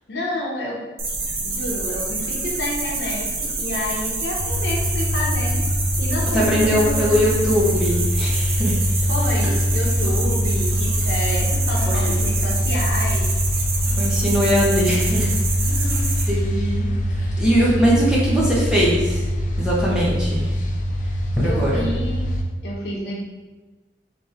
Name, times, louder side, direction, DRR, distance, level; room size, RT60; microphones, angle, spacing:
voice 1, 0.1-0.8 1.4-5.6 6.0-7.2 9.1-13.3 15.6-16.1 21.4-22.3 22.6-23.1, left 1 dB, 75° left, -2 dB, 0.9 m, -29 dB
sound 1, 1.0-16.2, right 3 dB, 55° right, 0.8 m, -27 dB
sound 2, 4.4-22.4, equal, 45° left, 0.5 m, -23 dB
voice 2, 6.3-8.8 9.4-9.5 11.9-12.1 13.8-15.3 16.3-16.9 17.2-19.3 19.6-20.5 21.4-21.8, equal, 5° right, -7 dB, 0.9 m, -21 dB
3.5 x 3.2 x 4.2 m, 1.2 s
head